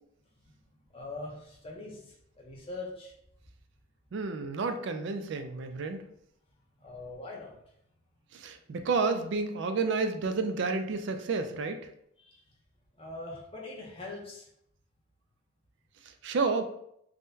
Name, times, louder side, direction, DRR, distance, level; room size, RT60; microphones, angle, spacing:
voice 1, 0.9-3.1 6.8-7.6 12.2-12.4 13.0-14.5, left 2 dB, 25° left, -3 dB, 0.7 m, -42 dB
voice 2, 4.1-6.0 8.3-11.8 16.2-16.6, right 4 dB, 55° right, 7 dB, 0.3 m, -30 dB
3.6 x 2.1 x 2.6 m, 0.72 s
head